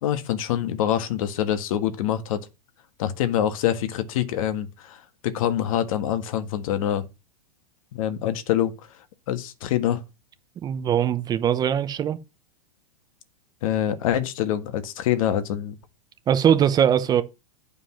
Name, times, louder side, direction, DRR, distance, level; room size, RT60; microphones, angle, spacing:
voice 1, 0.0-2.4 3.0-7.1 7.9-8.7 9.3-10.0 13.6-15.7, left 11 dB, 60° left, 1.6 m, -25 dB
voice 2, 10.6-12.2 16.3-17.2, right 9 dB, 20° right, 0.7 m, -21 dB
9.8 x 5.2 x 5.7 m
supercardioid pair, 145°, 19 cm